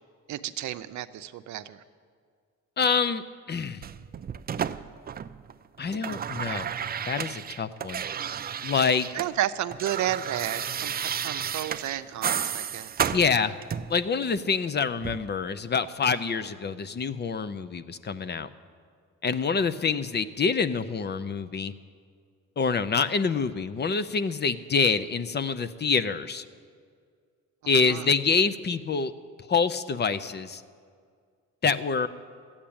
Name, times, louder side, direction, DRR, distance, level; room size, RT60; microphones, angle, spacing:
voice 1, 0.3-1.8 9.1-13.1 27.8-28.1, right 12 dB, 70° right, 11 dB, 0.6 m, -32 dB
voice 2, 2.8-3.2 3.5-3.8 5.8-6.7 7.1-8.0 8.6-9.1 13.1-13.5 13.9-18.5 19.2-21.7 22.6-26.4 27.7-29.1 29.5-30.6 31.6-32.1, left 5 dB, 35° left, 12 dB, 0.6 m, -26 dB
sound 1, 3.8-5.5 5.8-9.3 9.6-14.0 15.0-15.2, right 8 dB, 30° right, 0.4 m, -32 dB
13.5 x 8.7 x 8.7 m, 2.1 s
cardioid pair, 90°, 30 cm